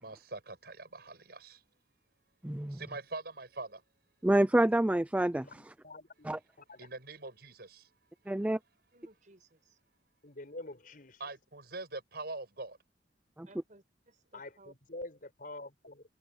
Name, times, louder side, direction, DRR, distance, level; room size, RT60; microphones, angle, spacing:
voice 1, 0.0-1.6 2.7-3.8 6.8-7.9 11.2-12.8, right 3 dB, 65° right, 6.6 m, -43 dB
voice 2, 2.4-2.8 4.2-5.7 6.2-6.4 8.3-8.6 13.4-13.5, right 1 dB, 10° right, 0.4 m, -28 dB
voice 3, 5.4-6.1 6.6-6.9 10.2-11.2 14.3-16.0, left 2 dB, 55° left, 5.9 m, -46 dB
voice 4, 8.9-9.8 13.5-14.7, right 2 dB, 45° right, 6.0 m, -59 dB
head